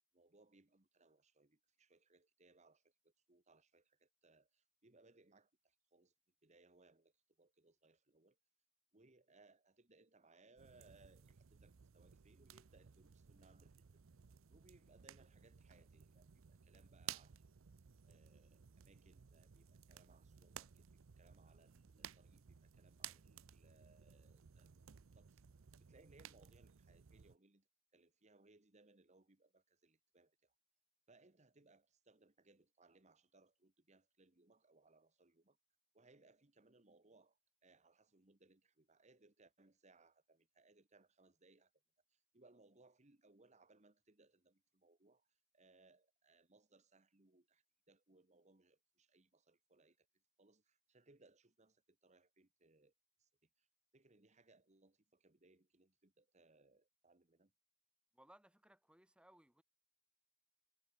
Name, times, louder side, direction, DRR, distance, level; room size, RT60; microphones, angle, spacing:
voice 1, 0.1-6.1 6.4-8.4 8.9-13.8 14.5-17.5 18.0-24.7 25.1-25.4 25.8-27.7 27.9-30.5 31.1-35.6 35.9-41.7 42.1-50.1 50.4-52.9 53.2-53.7 53.9-57.5, right 3 dB, 35° right, 1.5 m, -70 dB
sound 1, 10.6-27.4, right 10 dB, 80° right, 0.6 m, -57 dB
voice 2, 58.1-59.6, right 1 dB, 5° right, 3.4 m, -66 dB
head